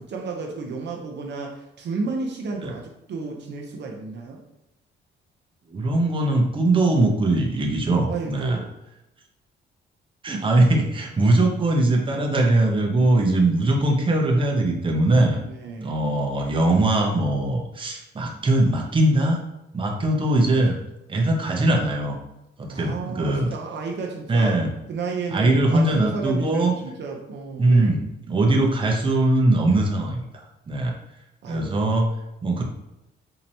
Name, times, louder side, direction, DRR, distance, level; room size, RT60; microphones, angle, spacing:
voice 1, 0.0-4.4 8.1-8.7 15.4-15.9 22.7-24.6 24.9-27.9 31.4-31.7, right 4 dB, 60° right, 1 dB, 0.7 m, -32 dB
voice 2, 5.7-8.6 10.2-15.4 15.8-19.4 19.7-20.7 21.1-22.2 22.6-23.5 24.3-24.7 25.3-26.7 27.6-28.0 28.3-30.2 30.7-30.9 31.5-32.1 32.4-32.6, right 2 dB, 25° right, 0 dB, 0.8 m, -21 dB
4.3 x 2.9 x 2.7 m, 0.89 s
cardioid pair, 90°, 20 cm